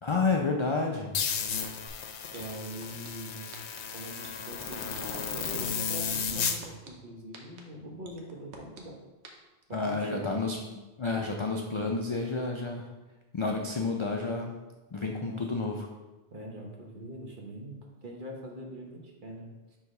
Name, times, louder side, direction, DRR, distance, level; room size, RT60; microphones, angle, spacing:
voice 1, 0.0-1.1 9.7-10.6 11.0-12.9 13.3-14.6 14.9-15.9, left 3 dB, 50° left, 1 dB, 0.3 m, -30 dB
sound 1, 1.1-6.6, left 6 dB, 85° left, 0.9 m, -33 dB
sound 2, 1.9-2.0 2.3-3.1 3.5-3.8 4.2-5.0 5.4-5.7 6.1-6.9 7.3-7.6 8.0-8.8 9.2-9.3, right 4 dB, 90° right, 1.1 m, -47 dB
voice 2, 2.3-3.5 3.9-9.0 9.7-10.2 15.3-15.4 16.3-19.8, right 1 dB, 50° right, 0 dB, 1.1 m, -43 dB
4.7 x 3.9 x 5.3 m, 1.1 s
omnidirectional pair, 1.1 m